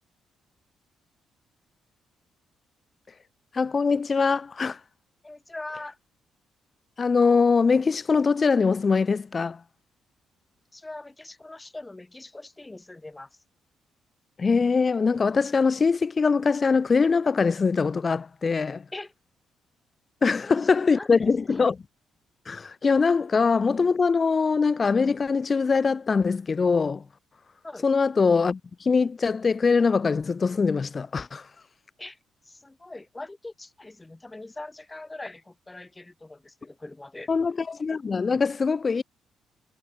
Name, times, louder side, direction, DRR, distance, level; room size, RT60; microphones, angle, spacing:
voice 1, 3.5-4.8 7.0-9.6 14.4-18.9 20.2-21.8 22.5-27.0 27.8-31.5 37.3-39.0, left 5 dB, 35° left, 0.8 m, -22 dB
voice 2, 5.2-6.0 10.7-13.3 18.9-19.1 20.2-21.2 21.5-21.7 27.6-27.9 32.0-32.2 32.5-37.3, left 2 dB, 15° left, 3.1 m, -42 dB
cardioid pair, 90°, 0 cm